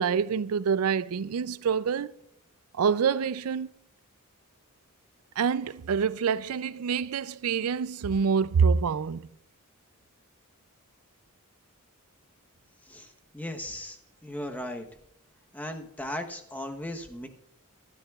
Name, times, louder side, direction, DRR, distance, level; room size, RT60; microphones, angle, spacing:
voice 1, 0.0-2.1 2.7-3.7 5.4-9.2, right 6 dB, 80° right, 0.4 m, -26 dB
voice 2, 12.9-14.8 15.5-17.3, left 1 dB, 10° left, 1.0 m, -37 dB
15.0 x 12.5 x 2.4 m
head